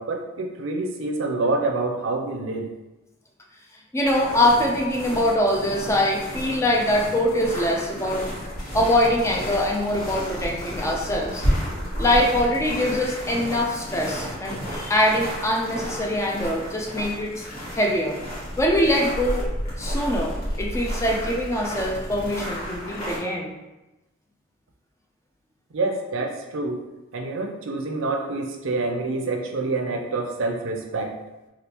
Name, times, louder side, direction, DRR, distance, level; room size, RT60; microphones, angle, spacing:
voice 1, 0.0-2.7 25.7-26.8 27.1-31.1, right 3 dB, 70° right, 2 dB, 0.5 m, -27 dB
voice 2, 3.9-8.2 8.7-11.4 12.0-17.4 17.7-18.2 18.6-19.5 19.8-23.5, left 1 dB, 15° left, -1 dB, 0.4 m, -23 dB
sound 1, 4.0-23.2, equal, 50° left, 1.3 m, -31 dB
3.4 x 2.4 x 2.9 m, 1.0 s
head